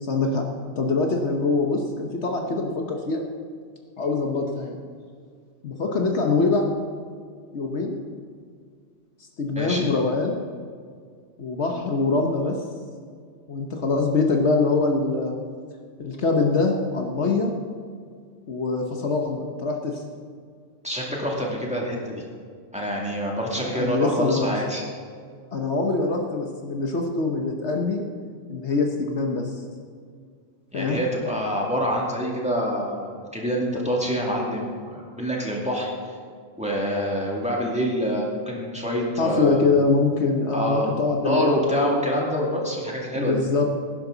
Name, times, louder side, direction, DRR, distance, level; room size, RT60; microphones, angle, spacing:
voice 1, 0.0-0.5 0.8-3.2 4.0-4.8 5.6-6.7 7.5-8.0 9.4-10.4 11.4-12.6 13.5-15.4 16.0-17.5 18.5-20.0 23.5-24.5 25.5-28.0 28.5-29.5 30.7-31.0 39.2-42.5 43.1-43.6, left 3 dB, 60° left, 2 dB, 1.3 m, -24 dB
voice 2, 9.5-9.9 20.8-22.2 22.7-24.8 30.7-36.1 36.6-39.7 40.5-43.4, equal, 5° right, -3 dB, 2.3 m, -26 dB
18.5 x 10.5 x 4.0 m, 2.1 s
omnidirectional pair, 1.3 m